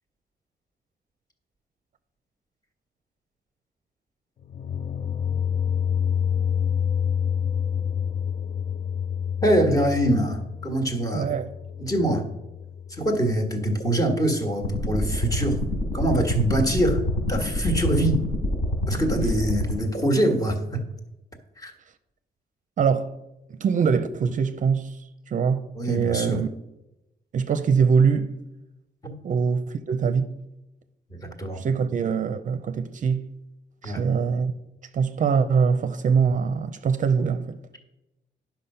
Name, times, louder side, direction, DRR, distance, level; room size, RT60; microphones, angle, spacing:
sound 1, 4.4-13.4, left 8 dB, 40° left, 0.4 m, -28 dB
voice 1, 9.4-11.3 11.8-12.3 12.9-15.6 15.9-17.0 17.3-18.2 18.9-20.8 21.6-21.7 25.7-26.4 29.0-29.1 31.1-31.6 33.8-34.0, right 1 dB, 20° left, 1.6 m, -24 dB
voice 2, 11.1-11.5 22.8-23.1 23.5-25.0 25.3-26.5 27.3-28.4 29.2-30.4 31.6-33.3 33.8-34.5 34.9-37.8, right 6 dB, 50° right, 0.6 m, -23 dB
sound 2, 14.6-19.7, left 1 dB, 60° left, 3.8 m, -27 dB
10.5 x 6.0 x 5.5 m
cardioid pair, 125°, 17 cm